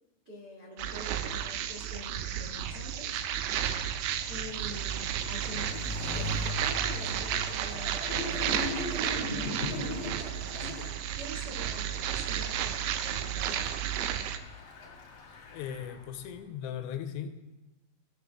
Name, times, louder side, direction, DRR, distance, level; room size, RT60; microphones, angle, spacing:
voice 1, 0.2-3.2 4.3-5.8 6.1-10.9 11.1-13.6, equal, 60° right, -2 dB, 1.0 m, -45 dB
sound 1, 0.8-14.4, right 10 dB, 85° right, 2.2 m, -33 dB
Bicycle, 2.1-16.5, left 3 dB, 60° left, 1.7 m, -45 dB
sound 2, 5.6-10.9, left 2 dB, 35° left, 1.5 m, -38 dB
voice 2, 15.5-17.4, left 8 dB, 80° left, 8 dB, 2.7 m, -38 dB
16.5 x 6.9 x 3.5 m, 1.1 s
omnidirectional pair, 5.1 m